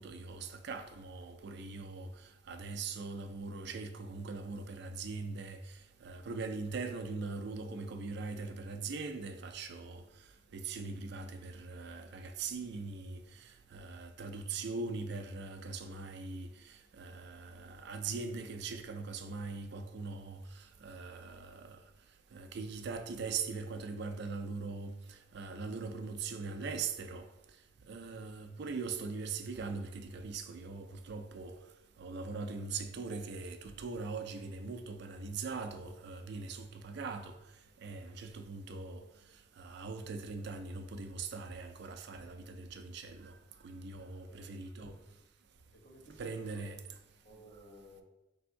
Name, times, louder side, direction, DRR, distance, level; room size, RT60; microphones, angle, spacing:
voice 1, 0.0-10.0 10.5-21.8 22.3-27.3 27.9-31.5 32.0-37.4 37.8-39.0 39.6-43.4 43.6-44.9 46.2-46.8, right 4 dB, 60° right, 0.4 m, -41 dB
voice 2, 44.3-45.1 45.7-46.8 47.2-48.0, equal, 80° left, 1.4 m, -56 dB
3.4 x 2.6 x 4.4 m
head